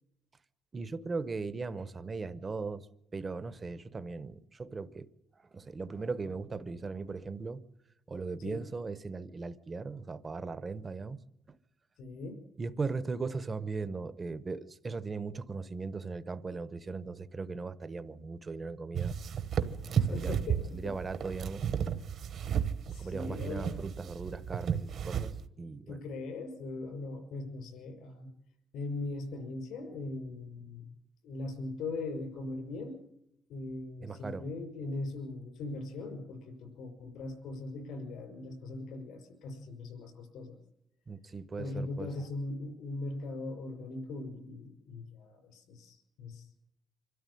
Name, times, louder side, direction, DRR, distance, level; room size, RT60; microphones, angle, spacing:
voice 1, 0.7-2.8 3.1-5.1 5.5-7.6 8.1-11.2 12.6-19.1 19.6-20.3 20.7-21.7 23.0-26.0 34.0-34.4 41.1-42.1, right 4 dB, 20° right, 0.8 m, -38 dB
voice 2, 12.0-12.4 19.9-20.9 22.8-23.8 25.9-28.3 28.7-30.9 31.2-33.0 33.5-40.6 41.6-46.5, left 2 dB, 75° left, 5.9 m, -40 dB
sound 1, 18.9-25.5, right 8 dB, 45° right, 1.0 m, -33 dB
25.5 x 13.0 x 9.9 m
cardioid pair, 170°, 0 cm